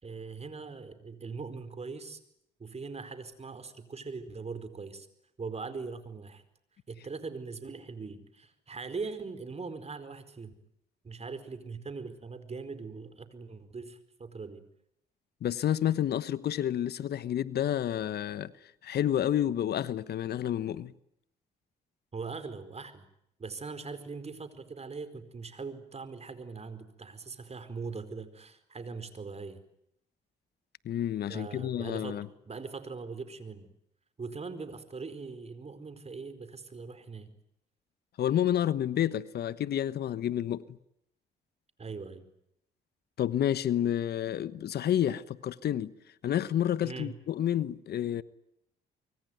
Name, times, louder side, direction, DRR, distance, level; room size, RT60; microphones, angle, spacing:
voice 1, 0.0-2.2 2.6-5.1 5.4-6.4 6.9-10.6 11.0-14.6 22.1-23.1 23.4-29.6 31.3-32.2 32.5-33.7 34.2-37.3 41.8-42.3 46.8-47.2, right 4 dB, 35° right, 4.7 m, -41 dB
voice 2, 15.4-18.5 18.8-20.9 30.8-32.3 38.2-40.6 43.2-45.9 46.2-48.2, left 11 dB, 65° left, 1.2 m, -29 dB
25.0 x 24.0 x 9.4 m
supercardioid pair, 65°, 18 cm